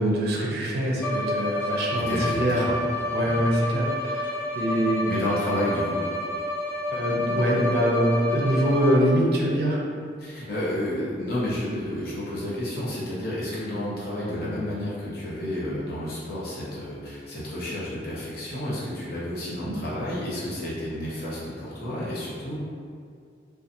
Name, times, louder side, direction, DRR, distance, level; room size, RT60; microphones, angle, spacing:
voice 1, 0.0-2.7 3.1-5.0 6.9-9.9 19.6-19.8, right 1 dB, 55° right, -2 dB, 0.4 m, -24 dB
Bowed string instrument, 1.0-9.3, left 2 dB, 10° left, 0.3 m, -29 dB
voice 2, 1.9-2.8 3.2-3.4 5.1-6.1 10.2-22.6, left 1 dB, 55° left, -8 dB, 0.8 m, -31 dB
2.7 x 2.3 x 2.5 m, 2.2 s
head